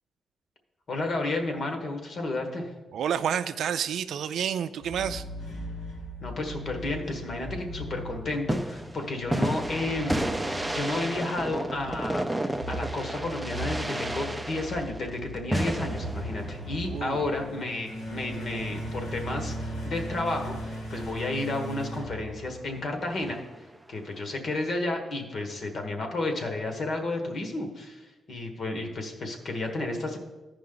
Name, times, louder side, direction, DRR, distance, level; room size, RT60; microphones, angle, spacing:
voice 1, 0.9-2.7 6.2-12.2 12.7-23.4 23.9-30.2, left 2 dB, 50° left, 4 dB, 1.3 m, -32 dB
voice 2, 2.9-5.2 16.8-17.2, right 8 dB, 85° right, 11 dB, 0.4 m, -29 dB
sound 1, 4.8-23.0, equal, 70° left, 2.2 m, -38 dB
sound 2, 8.5-17.7 23.2-23.6, right 1 dB, 5° right, 0.5 m, -32 dB
14.5 x 5.2 x 3.9 m, 1.2 s
wide cardioid pair, 140°, 0 cm